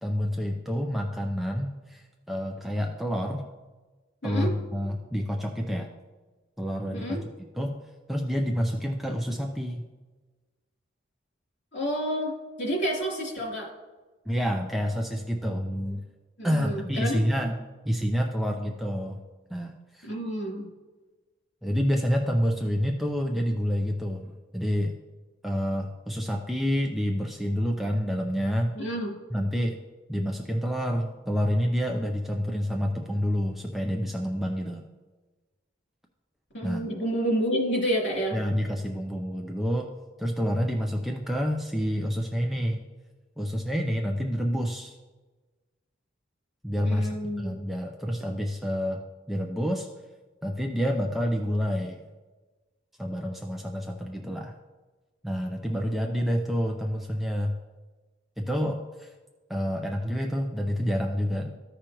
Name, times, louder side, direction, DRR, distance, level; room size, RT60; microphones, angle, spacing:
voice 1, 0.0-3.5 4.2-5.9 6.6-7.2 7.6-7.8 8.1-9.8 14.3-16.0 16.4-17.6 17.9-19.2 19.5-20.1 21.6-24.9 25.4-28.7 29.3-29.8 30.1-34.8 36.6-36.9 38.3-39.9 40.2-42.8 43.4-45.0 46.6-49.0 49.3-49.9 50.4-52.0 53.0-54.5 55.2-57.6 58.4-59.1 59.5-61.5, equal, ahead, 1 dB, 0.4 m, -28 dB
voice 2, 11.7-12.3 12.6-13.7 16.4-17.3 20.1-20.7 28.7-29.1 36.5-38.4 46.8-47.5, equal, 55° left, -5 dB, 2.9 m, -29 dB
14.5 x 4.9 x 3.0 m, 1.3 s
head